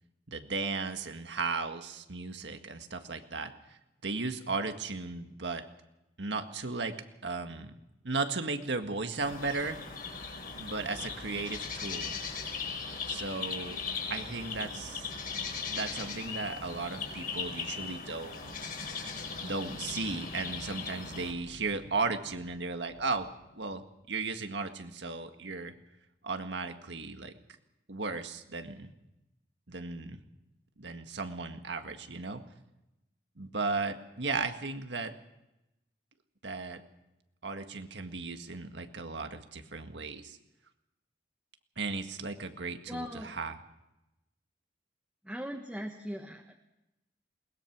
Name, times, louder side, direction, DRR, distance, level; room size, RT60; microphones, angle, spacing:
voice 1, 0.3-5.6 6.2-6.9 7.2-7.7 8.0-9.8 10.5-12.2 13.1-13.8 14.1-15.1 15.7-18.7 19.4-23.3 23.5-25.8 26.2-27.3 27.9-28.9 29.7-30.2 30.8-32.4 33.4-35.1 36.4-36.8 37.4-40.4 41.8-43.6, right 3 dB, 80° right, 6 dB, 1.8 m, -36 dB
sound 1, 9.2-21.3, left 5 dB, 55° left, 4.5 m, -38 dB
sound 2, 18.4-24.3, left 1 dB, 85° left, 1.3 m, -52 dB
voice 2, 42.9-43.3 45.2-46.5, equal, 5° right, 0 dB, 1.3 m, -39 dB
21.5 x 20.0 x 6.1 m, 0.93 s
head